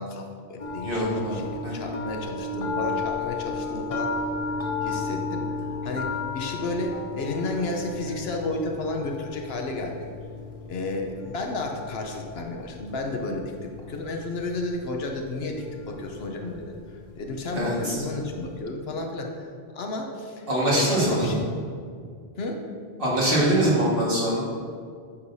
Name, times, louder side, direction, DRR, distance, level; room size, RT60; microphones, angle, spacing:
voice 1, 0.0-4.2 4.8-10.1 10.6-16.7 17.2-21.5 22.4-22.6, left 2 dB, 70° left, 2 dB, 1.0 m, -32 dB
sound 1, 0.6-18.6, left 3 dB, 35° left, 0.7 m, -34 dB
voice 2, 0.8-1.4 1.6-1.7 17.5-18.0 20.5-21.4 23.0-24.4, right 1 dB, 55° right, -6 dB, 1.9 m, -23 dB
8.5 x 6.4 x 2.7 m, 2.2 s
omnidirectional pair, 1.1 m